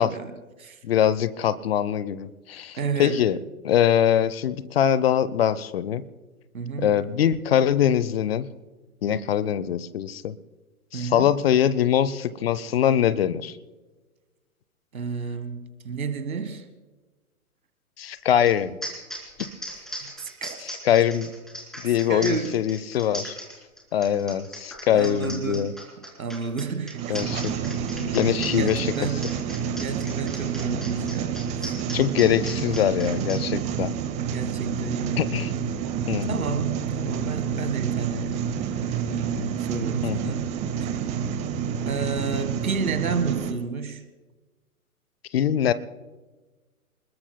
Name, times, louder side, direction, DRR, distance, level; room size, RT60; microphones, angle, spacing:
voice 1, 0.0-0.8 2.8-3.3 6.5-7.0 10.9-11.3 14.9-16.7 19.9-20.6 22.1-22.6 24.9-25.7 26.2-27.2 28.1-29.3 29.7-31.7 32.5-32.6 34.3-35.4 36.2-38.4 38.8-41.1 41.8-44.0, right 5 dB, 65° right, 1.7 m, -31 dB
voice 2, 0.8-3.4 3.6-6.0 6.8-8.5 9.0-10.3 10.9-13.6 18.0-18.7 20.6-21.3 21.8-23.4 23.9-25.7 27.1-27.5 27.9-28.9 31.9-33.9 35.2-35.5 36.1-36.4 40.0-40.2 45.3-45.7, left 10 dB, 45° left, 0.8 m, -23 dB
sound 1, 18.5-18.6 18.8-33.4, equal, ahead, 3.6 m, -38 dB
sound 2, 26.9-43.5, right 7 dB, 15° right, 0.8 m, -29 dB
28.0 x 20.5 x 2.2 m
figure-of-eight pair, 115°, 44 cm